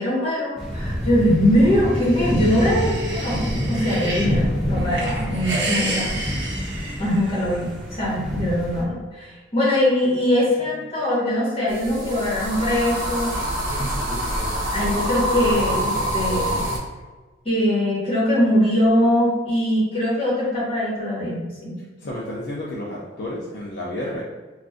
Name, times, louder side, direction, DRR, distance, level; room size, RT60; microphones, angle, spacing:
voice 1, 0.0-6.1 7.0-13.3 14.7-16.6 17.4-21.7, left 1 dB, 30° left, -7 dB, 1.4 m, -22 dB
sound 1, 0.6-8.8, equal, ahead, 0.5 m, -27 dB
sound 2, 1.7-4.4 4.8-7.6, right 2 dB, 65° right, 0.6 m, -31 dB
sound 3, 11.7-16.8, right 1 dB, 50° right, 1.0 m, -25 dB
voice 2, 22.0-24.2, left 1 dB, 60° left, -5 dB, 0.5 m, -31 dB
2.5 x 2.4 x 3.4 m, 1.3 s
head